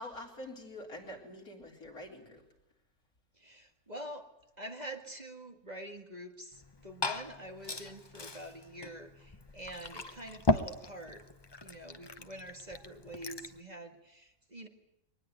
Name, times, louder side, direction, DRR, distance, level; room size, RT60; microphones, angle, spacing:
voice 1, 0.0-2.4, left 1 dB, 80° left, 0 dB, 4.4 m, -45 dB
voice 2, 3.3-4.3 4.6-11.2 11.6-14.7, right 1 dB, 30° right, 4 dB, 2.0 m, -46 dB
Glass / Fill (with liquid), 6.5-13.6, left 2 dB, 25° left, 0.7 m, -37 dB
23.0 x 20.0 x 9.2 m, 0.90 s
omnidirectional pair, 1.5 m